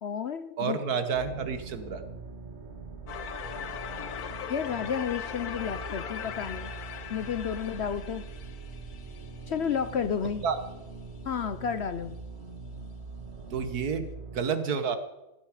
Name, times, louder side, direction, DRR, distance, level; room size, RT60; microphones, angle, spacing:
voice 1, 0.0-0.8 4.5-6.7 7.1-8.2 9.5-10.4 11.2-12.2, left 7 dB, 55° left, 12 dB, 0.8 m, -31 dB
voice 2, 0.6-2.0 10.4-10.6 13.5-14.1 14.3-15.0, right 6 dB, 80° right, 10 dB, 1.8 m, -29 dB
sound 1, 1.1-14.4, right 4 dB, 45° right, 2.3 m, -43 dB
sound 2, 3.1-9.9, left 8 dB, 80° left, 1.4 m, -40 dB
17.5 x 12.5 x 4.9 m, 0.97 s
omnidirectional pair, 1.6 m